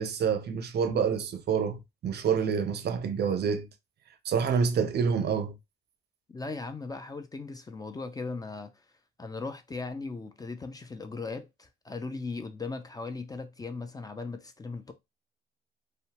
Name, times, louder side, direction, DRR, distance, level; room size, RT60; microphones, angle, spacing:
voice 1, 0.0-3.7 4.2-5.5, right 6 dB, 55° right, 0.5 m, -27 dB
voice 2, 6.3-8.8 9.2-14.9, left 3 dB, 20° left, 0.4 m, -38 dB
2.7 x 2.1 x 2.7 m
cardioid pair, 90°, 20 cm